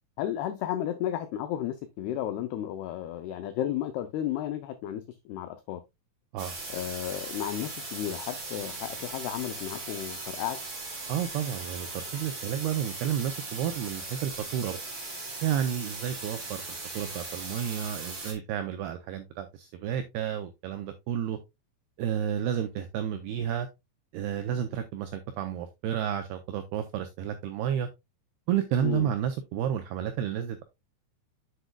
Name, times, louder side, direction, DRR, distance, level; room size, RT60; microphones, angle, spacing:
voice 1, 0.2-5.8 6.7-10.6 28.8-29.1, left 11 dB, 85° left, 2.3 m, -33 dB
sound 1, 6.4-18.3, right 3 dB, 30° right, 2.9 m, -39 dB
voice 2, 11.1-14.8 15.4-16.6 16.9-21.4 22.0-23.7 24.1-27.9 28.5-30.6, right 9 dB, 85° right, 2.3 m, -31 dB
8.1 x 7.8 x 2.2 m
omnidirectional pair, 5.5 m